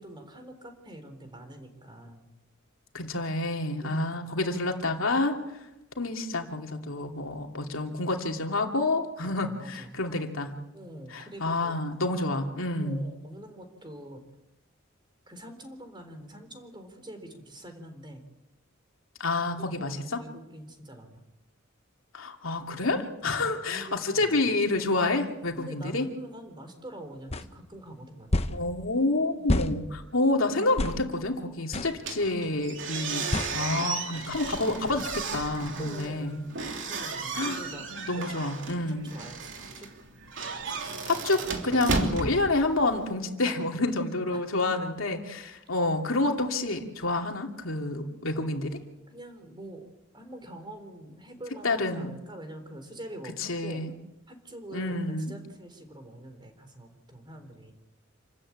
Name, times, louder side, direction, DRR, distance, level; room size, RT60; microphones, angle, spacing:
voice 1, 0.0-2.3 3.8-4.3 9.2-10.0 10.7-11.8 12.8-14.2 15.3-18.2 19.4-19.5 19.7-21.2 23.2-24.5 25.5-28.4 29.3-29.6 35.8-36.3 36.9-37.9 38.1-38.4 38.9-39.9 43.4-43.6 44.3-44.4 49.1-53.8 54.3-57.7, right 1 dB, 25° right, 6 dB, 4.0 m, -45 dB
voice 2, 2.9-5.4 6.0-10.5 11.1-13.0 19.2-20.2 22.1-26.1 28.5-33.3 33.5-36.4 37.3-37.6 37.9-39.1 40.8-48.8 51.6-52.1 53.4-53.9 54.7-55.4, left 2 dB, 85° left, 3 dB, 2.7 m, -28 dB
sound 1, 27.3-27.5 28.3-28.6 29.5-29.7 30.8-31.0 31.7-31.9 33.3-33.5, left 1 dB, 30° left, 1.0 m, -27 dB
sound 2, 32.0-43.1, right 4 dB, 65° right, 3.1 m, -34 dB
28.0 x 13.5 x 8.8 m, 0.95 s
head